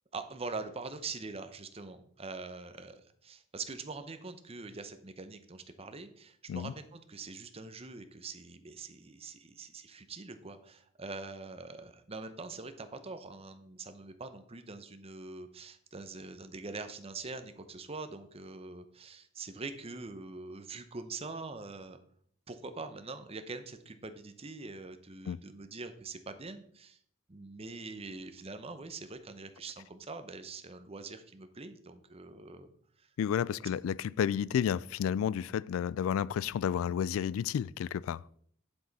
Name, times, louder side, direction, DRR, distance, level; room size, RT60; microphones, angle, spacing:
voice 1, 0.1-22.0 22.5-27.0 27.3-32.7 33.0-33.1, right 3 dB, 30° right, 0.8 m, -44 dB
voice 2, 33.2-38.2, left 8 dB, 90° left, 0.3 m, -31 dB
8.8 x 7.6 x 4.1 m
head